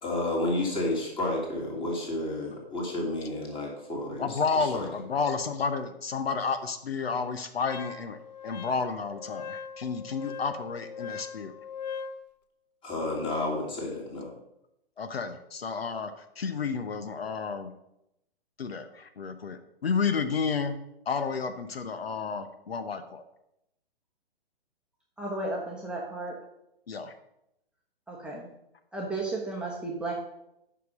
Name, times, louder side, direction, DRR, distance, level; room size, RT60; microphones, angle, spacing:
voice 1, 0.0-4.9 12.8-14.3, left 2 dB, 15° left, -1 dB, 2.7 m, -31 dB
voice 2, 4.2-8.2 8.4-11.5 15.0-17.7 18.6-20.8 21.1-23.2 26.9-27.1, left 5 dB, 70° left, 9 dB, 0.9 m, -31 dB
Wind instrument woodwind instrument, 7.6-12.2, left 6 dB, 45° left, 0.7 m, -40 dB
voice 3, 25.2-26.3 28.1-28.5 28.9-30.1, right 2 dB, 5° right, -4 dB, 1.0 m, -33 dB
9.4 x 6.0 x 5.1 m, 0.84 s
figure-of-eight pair, 125°, 31 cm